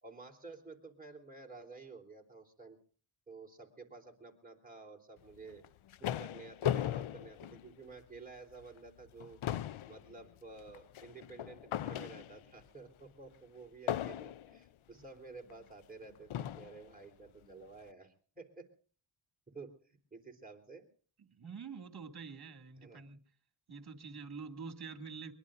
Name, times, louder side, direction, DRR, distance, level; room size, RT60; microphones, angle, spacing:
voice 1, 0.0-2.8 3.3-5.6 6.0-9.4 9.9-18.7 19.5-20.8 22.8-23.0, right 3 dB, 15° right, 3.8 m, -52 dB
sound 1, 5.5-8.2 8.6-8.8 9.1-12.6 13.9-14.6 15.5-15.6 16.3-16.8, left 11 dB, 80° left, 0.7 m, -38 dB
voice 2, 21.4-23.2 23.7-25.3, right 5 dB, 50° right, 2.3 m, -46 dB
23.5 x 22.0 x 2.6 m
wide cardioid pair, 90°, 49 cm